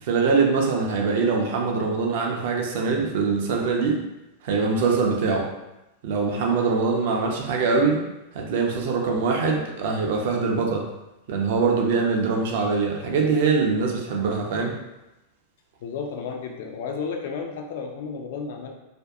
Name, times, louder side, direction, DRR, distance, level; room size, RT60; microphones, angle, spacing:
voice 1, 0.0-4.0 4.4-5.5 6.0-8.0 8.3-10.9 11.3-14.8, right 4 dB, 55° right, 1 dB, 0.4 m, -23 dB
voice 2, 15.8-18.7, left 5 dB, 55° left, 3 dB, 0.3 m, -32 dB
2.6 x 2.2 x 2.4 m, 0.97 s
figure-of-eight pair, 90°, 0 cm